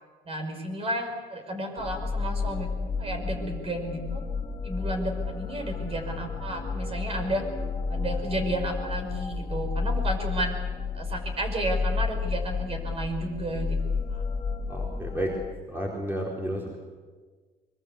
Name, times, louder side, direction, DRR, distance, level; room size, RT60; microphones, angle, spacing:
voice 1, 0.3-2.7 3.0-4.2 4.6-7.4 7.9-10.6 10.9-13.8 14.1-14.2, right 1 dB, 35° right, 4 dB, 5.9 m, -32 dB
sound 1, 1.8-15.5, left 4 dB, 25° left, 1.7 m, -31 dB
voice 2, 14.7-15.3 15.7-16.8, right 1 dB, 10° right, -1 dB, 4.2 m, -31 dB
23.5 x 23.0 x 8.1 m, 1.5 s
cardioid pair, 110°, 17 cm